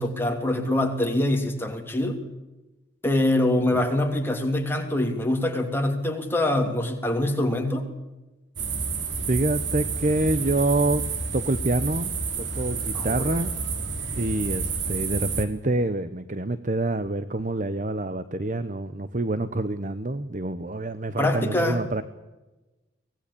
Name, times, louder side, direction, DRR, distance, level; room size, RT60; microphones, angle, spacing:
voice 1, 0.0-2.2 3.0-7.9 12.9-13.3 21.2-21.8, left 1 dB, 10° left, 3 dB, 3.1 m, -24 dB
sound 1, 8.6-15.4, right 4 dB, 75° right, 3.2 m, -30 dB
voice 2, 9.3-11.1 11.3-13.5 14.1-22.0, right 2 dB, 40° right, 12 dB, 1.0 m, -27 dB
24.5 x 18.5 x 8.5 m, 1.1 s
head